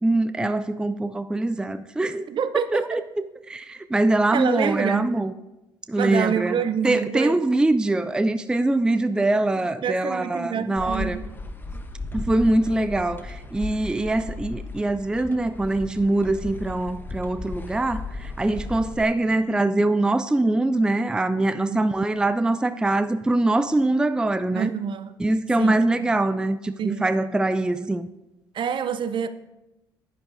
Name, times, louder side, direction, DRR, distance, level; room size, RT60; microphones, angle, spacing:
voice 1, 0.0-2.3 2.7-3.0 3.5-5.3 5.9-6.6 6.8-11.2 12.1-24.7 25.2-28.1, right 2 dB, 5° right, 0.4 m, -23 dB
voice 2, 2.3-3.0 4.3-5.1 6.0-7.3 9.8-11.3 11.7-11.8 21.7-22.1 24.5-25.1 25.6-25.9 26.8-27.1 28.5-29.3, right 7 dB, 50° right, 0.6 m, -27 dB
sound 1, 10.8-19.0, left 3 dB, 20° left, 0.9 m, -36 dB
11.0 x 9.8 x 2.6 m
hypercardioid pair, 65°, 11 cm